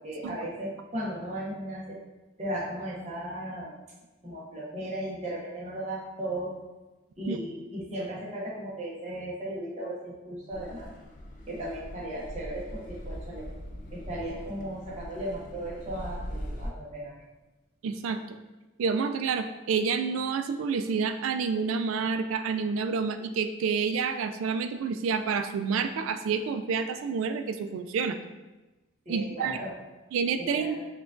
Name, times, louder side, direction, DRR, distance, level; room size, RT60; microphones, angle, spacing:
voice 1, 0.0-2.0 2.4-3.8 4.2-6.6 7.2-10.9 11.5-13.5 13.9-17.3 29.1-29.7 30.4-30.9, right 1 dB, 35° right, -5 dB, 0.8 m, -36 dB
Car passing by / Accelerating revving vroom, 10.5-16.7, equal, 40° left, 0.3 m, -41 dB
voice 2, 17.8-18.2 18.8-28.2 29.1-29.6 30.1-30.8, right 5 dB, 85° right, 9 dB, 0.3 m, -29 dB
5.7 x 2.3 x 2.5 m, 1.1 s
head